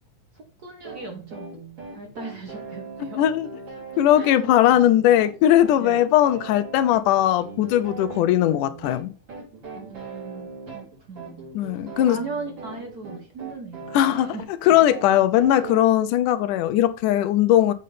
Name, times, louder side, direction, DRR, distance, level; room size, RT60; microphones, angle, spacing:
voice 1, 0.3-1.6 1.9-3.2 4.1-4.5 5.8-6.0 9.8-11.5 12.0-14.7, right 3 dB, 65° right, 0.9 m, -38 dB
sound 1, 0.8-15.8, right 4 dB, 35° right, 4.2 m, -39 dB
voice 2, 3.0-3.5 4.0-9.1 11.6-12.2 13.9-14.3 14.6-17.7, left 12 dB, 90° left, 2.3 m, -19 dB
7.5 x 5.3 x 4.1 m
omnidirectional pair, 3.5 m